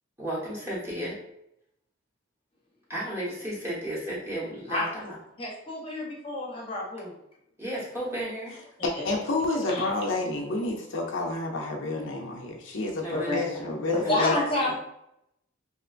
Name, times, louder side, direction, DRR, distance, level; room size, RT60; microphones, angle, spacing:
voice 1, 0.2-1.2 2.9-5.2 7.6-8.6 13.0-14.8, right 1 dB, 15° right, -7 dB, 1.1 m, -34 dB
voice 2, 5.4-7.1 8.8-9.1 9.7-9.9 13.1-13.4 13.9-14.8, left 1 dB, 30° left, -2 dB, 0.8 m, -29 dB
voice 3, 8.8-14.4, left 3 dB, 75° left, 0 dB, 0.5 m, -29 dB
3.1 x 2.8 x 2.4 m, 0.79 s
head